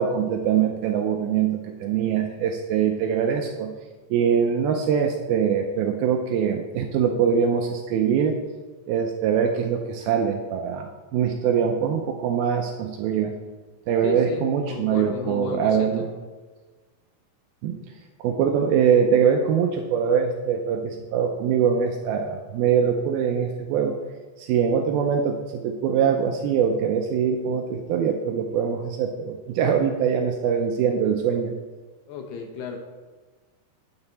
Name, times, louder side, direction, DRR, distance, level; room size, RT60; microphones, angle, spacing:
voice 1, 0.0-3.7 4.1-8.4 8.9-13.4 13.9-16.0 17.6-17.8 18.2-24.0 24.4-31.5, right 7 dB, 85° right, 3 dB, 2.2 m, -23 dB
voice 2, 14.0-16.1 32.1-32.8, left 5 dB, 75° left, 3 dB, 2.9 m, -33 dB
9.6 x 8.9 x 4.2 m, 1.3 s
omnidirectional pair, 4.9 m